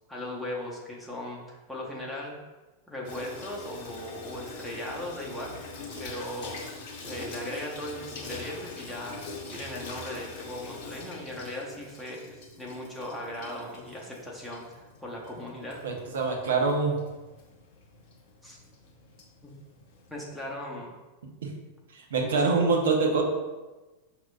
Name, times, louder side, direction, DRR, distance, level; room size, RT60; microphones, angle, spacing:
voice 1, 0.1-2.4 2.9-5.5 6.0-6.6 7.0-9.2 9.5-15.8 18.4-18.6 19.4-19.5 20.1-20.9 22.1-22.3, left 1 dB, ahead, -5 dB, 0.9 m, -38 dB
Water tap faucet / Sink (filling or washing), 3.0-20.5, left 3 dB, 50° left, 0.8 m, -44 dB
voice 2, 15.8-16.9 21.4-21.5 21.9-23.2, right 4 dB, 60° right, 1 dB, 0.7 m, -25 dB
5.8 x 2.8 x 2.2 m, 1.2 s
figure-of-eight pair, 90°, 0 cm